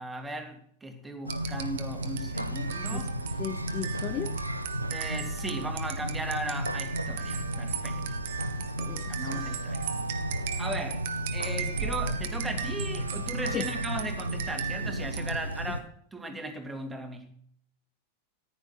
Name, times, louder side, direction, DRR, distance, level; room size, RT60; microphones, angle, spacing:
voice 1, 0.0-3.1 4.9-8.0 9.1-9.9 10.6-17.3, right 2 dB, 10° right, 5 dB, 2.7 m, -37 dB
sound 1, 1.3-15.7, right 9 dB, 55° right, 1.4 m, -38 dB
sound 2, 1.3-15.8, equal, 90° right, 1.1 m, -34 dB
voice 2, 2.9-4.4 8.8-9.4 13.5-13.7 16.3-16.4, left 10 dB, 30° left, 11 dB, 0.9 m, -36 dB
14.5 x 11.0 x 5.8 m, 0.64 s
figure-of-eight pair, 90°, 0 cm